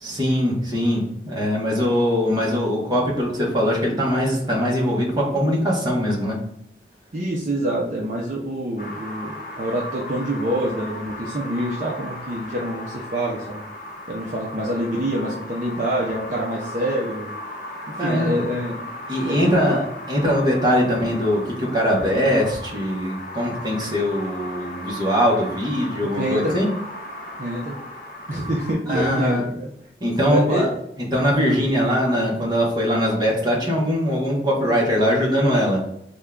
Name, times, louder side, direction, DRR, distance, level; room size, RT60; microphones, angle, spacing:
voice 1, 0.0-6.4 18.0-18.4 19.1-26.7 28.9-29.4 30.0-30.7 31.1-35.8, equal, 25° right, -3 dB, 0.9 m, -21 dB
voice 2, 7.1-13.6 14.1-17.3 18.0-18.8 19.3-19.8 26.0-26.6 27.4-27.8 28.3-29.7 30.3-30.7 31.4-31.6, right 1 dB, 45° right, -4 dB, 0.5 m, -26 dB
sound 1, 8.8-28.7, left 1 dB, 50° left, 0.8 m, -36 dB
3.5 x 2.2 x 3.5 m, 0.76 s
head